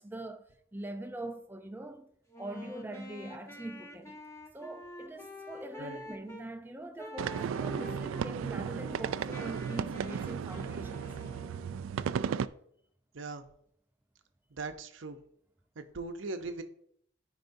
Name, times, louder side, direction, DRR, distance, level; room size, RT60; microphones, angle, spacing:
voice 1, 0.0-2.1 2.4-4.2 4.5-11.1, right 2 dB, 10° right, 0.5 m, -43 dB
Wind instrument woodwind instrument, 2.3-6.5 7.0-8.4 8.8-12.0, left 1 dB, 15° left, 0.8 m, -47 dB
sound 1, 7.2-12.5, right 7 dB, 90° right, 0.3 m, -35 dB
voice 2, 13.1-13.4 14.5-15.2 15.8-16.6, right 3 dB, 75° right, 0.7 m, -39 dB
13.0 x 4.9 x 2.6 m
head